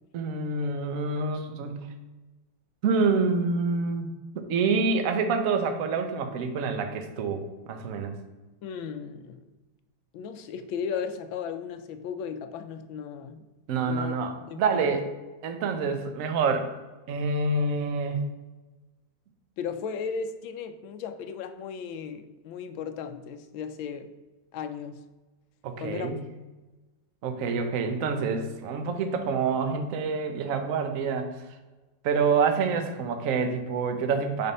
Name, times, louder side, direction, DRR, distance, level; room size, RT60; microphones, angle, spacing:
voice 1, 0.1-1.8 2.8-8.1 13.7-15.0 15.4-16.7 17.1-18.2 25.6-26.2 27.2-31.3 32.0-34.5, right 4 dB, 60° right, 6 dB, 0.9 m, -27 dB
voice 2, 8.6-9.5 10.1-13.4 13.8-14.9 19.6-24.1 24.5-25.1 25.8-26.1, left 6 dB, 85° left, 9 dB, 1.4 m, -36 dB
6.5 x 3.5 x 5.4 m, 1.2 s
omnidirectional pair, 2.1 m